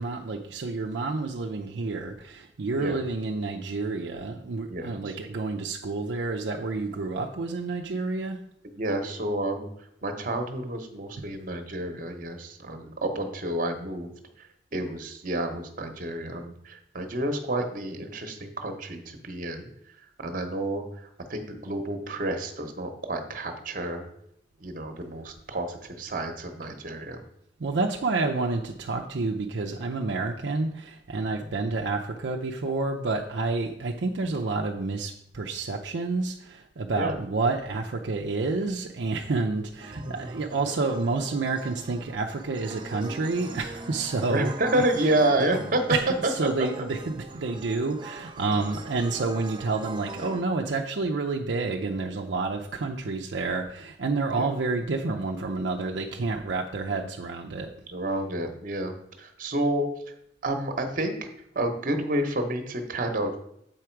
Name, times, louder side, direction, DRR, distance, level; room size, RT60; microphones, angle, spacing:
voice 1, 0.0-8.4 27.6-44.8 45.9-46.0 46.3-57.7, right 3 dB, 75° right, 1 dB, 0.5 m, -29 dB
voice 2, 4.7-5.2 6.9-7.2 8.6-24.0 24.6-27.2 31.3-31.5 36.9-37.2 39.9-40.3 44.3-46.0 46.2-46.8 54.3-54.5 57.9-59.9 60.4-61.3 61.5-63.4, right 1 dB, 50° right, 6 dB, 1.0 m, -30 dB
sound 1, 39.8-50.4, right 3 dB, 25° right, 0.5 m, -42 dB
7.8 x 4.9 x 4.5 m, 0.75 s
head